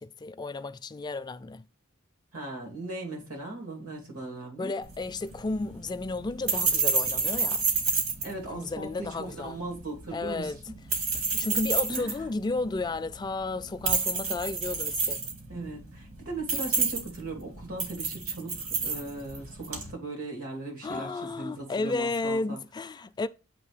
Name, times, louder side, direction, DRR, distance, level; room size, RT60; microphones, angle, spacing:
voice 1, 0.0-1.6 4.6-7.6 8.5-9.6 10.1-10.6 11.4-15.2 20.8-23.3, left 3 dB, 20° left, 0.3 m, -33 dB
voice 2, 2.3-4.7 8.2-10.7 11.3-11.4 11.9-12.2 15.5-22.6, right 2 dB, 90° right, 2.8 m, -38 dB
sound 1, 4.8-19.9, right 4 dB, 75° right, 1.9 m, -30 dB
7.5 x 3.0 x 4.9 m
head